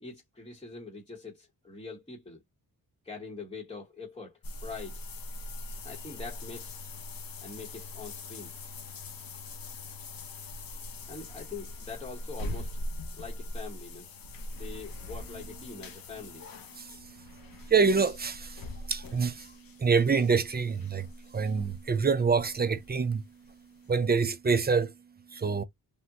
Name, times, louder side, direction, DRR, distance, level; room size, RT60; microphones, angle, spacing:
voice 1, 0.0-2.4 3.0-5.0 5.8-6.8 7.4-8.6 11.1-12.8 13.2-14.2 14.5-16.4, left 4 dB, 15° left, 1.0 m, -43 dB
sound 1, 4.4-23.1 23.4-23.5 24.0-24.1, left 2 dB, 70° left, 0.8 m, -42 dB
voice 2, 16.7-25.0 25.3-25.6, right 5 dB, 25° right, 0.4 m, -27 dB
3.6 x 2.1 x 2.8 m
wide cardioid pair, 110°, 36 cm